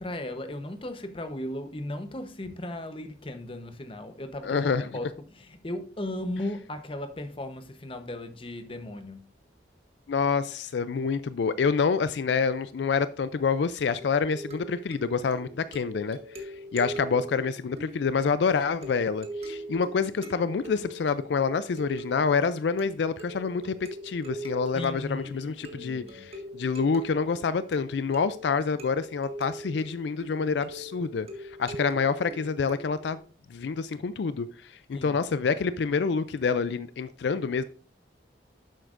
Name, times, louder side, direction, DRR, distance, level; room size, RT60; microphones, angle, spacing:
voice 1, 0.0-9.3 24.7-26.3 34.9-35.2, left 1 dB, 30° left, 0.9 m, -36 dB
voice 2, 4.4-4.9 10.1-23.8 24.0-33.2 33.5-37.6, left 5 dB, 75° left, 0.4 m, -27 dB
sound 1, 14.0-33.2, right 1 dB, 35° right, 1.6 m, -42 dB
11.0 x 7.8 x 2.5 m
head